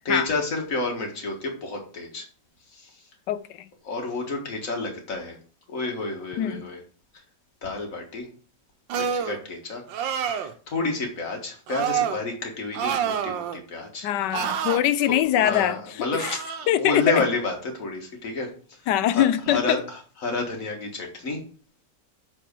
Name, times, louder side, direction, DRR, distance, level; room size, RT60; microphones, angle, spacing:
voice 1, 0.1-2.3 2.7-3.0 3.8-5.4 5.7-6.8 7.6-8.3 8.9-9.8 10.1-14.1 15.1-16.4 16.8-21.4, left 3 dB, 45° left, 1.9 m, -30 dB
voice 2, 3.3-3.7 6.4-6.6 14.0-16.3 16.7-17.2 18.9-19.8, left 12 dB, 75° left, 1.1 m, -23 dB
sound 1, 8.9-9.4 9.9-10.5 11.7-12.2 12.7-13.6 14.3-14.8 16.2-16.7, right 8 dB, 85° right, 1.5 m, -27 dB
7.4 x 4.2 x 5.2 m
omnidirectional pair, 2.0 m